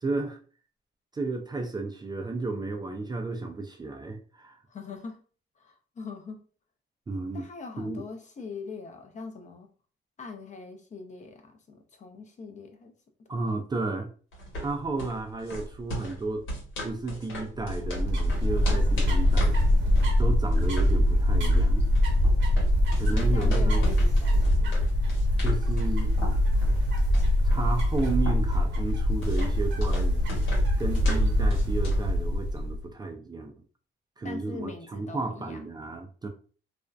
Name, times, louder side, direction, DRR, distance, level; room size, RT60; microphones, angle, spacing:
voice 1, 0.0-0.4 1.1-4.6 7.1-7.4 7.8-8.0 13.3-14.1 14.6-16.5 16.8-19.6 20.2-21.9 22.9-23.8 25.4-26.1 27.4-30.2 30.8-33.5 34.2-36.3, right 3 dB, 20° right, 0.4 m, -33 dB
voice 2, 4.7-5.2 5.6-6.4 7.3-9.7 10.2-12.9 13.3-13.4 23.1-24.8 34.2-35.6, left 4 dB, 35° left, 0.5 m, -42 dB
sound 1, 14.3-32.1, equal, 80° left, 1.1 m, -39 dB
sound 2, 17.6-32.8, left 1 dB, 70° right, 1.0 m, -23 dB
2.5 x 2.1 x 2.3 m
cardioid pair, 90°, 20 cm